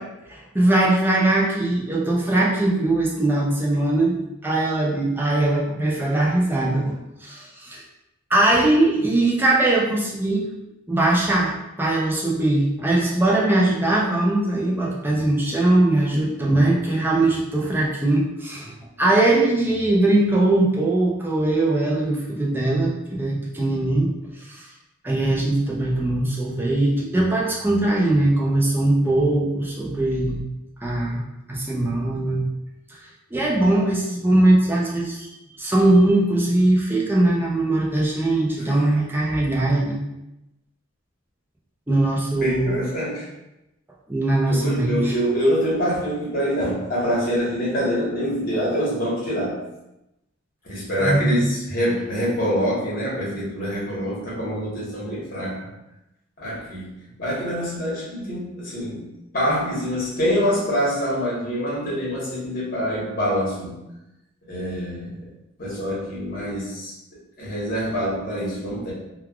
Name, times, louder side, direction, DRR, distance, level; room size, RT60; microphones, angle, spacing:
voice 1, 0.3-4.2 4.4-6.9 7.2-7.8 8.3-10.5 10.9-24.1 24.4-24.7 25.0-30.4 30.8-31.2 31.5-32.5 32.9-33.0 33.3-35.3 35.6-40.0 41.9-42.7 44.1-45.1 51.0-51.5, right 2 dB, 10° right, -4 dB, 0.4 m, -20 dB
voice 2, 42.4-43.3 44.5-49.6 50.6-55.7 56.4-59.0 59.3-63.7 64.5-65.3 65.6-66.9 67.4-68.9, equal, 45° left, -6 dB, 1.1 m, -25 dB
3.2 x 2.3 x 2.3 m, 0.91 s
head